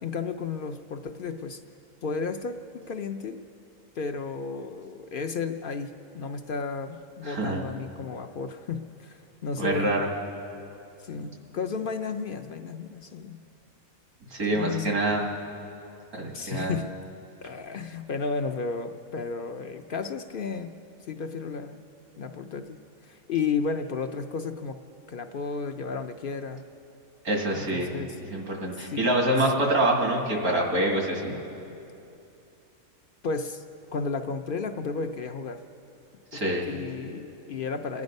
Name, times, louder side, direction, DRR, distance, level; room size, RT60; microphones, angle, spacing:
voice 1, 0.0-1.6 2.0-3.4 4.0-9.9 11.0-13.4 14.5-15.0 16.3-16.9 17.4-20.7 21.1-21.8 22.2-24.8 25.1-26.6 27.5-28.1 28.7-29.1 33.2-33.6 33.9-35.6 36.3-38.0, left 5 dB, 60° left, 6 dB, 0.5 m, -33 dB
voice 2, 7.2-7.6 9.6-10.1 11.2-11.3 14.3-15.3 16.2-16.7 27.2-27.9 28.3-31.3 36.3-36.7, right 1 dB, 80° right, 0 dB, 2.5 m, -26 dB
28.5 x 9.7 x 5.3 m, 2.8 s
omnidirectional pair, 1.5 m